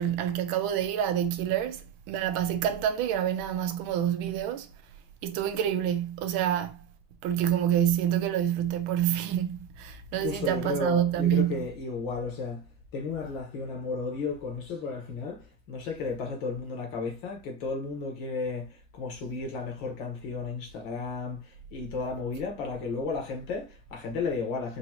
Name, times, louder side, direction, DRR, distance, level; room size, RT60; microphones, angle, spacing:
voice 1, 0.0-4.7 5.2-6.8 7.2-11.7, right 10 dB, 85° right, 1.4 m, -27 dB
voice 2, 10.2-12.6 12.9-24.8, left 4 dB, 70° left, 1.8 m, -33 dB
4.7 x 2.7 x 2.8 m
omnidirectional pair, 2.2 m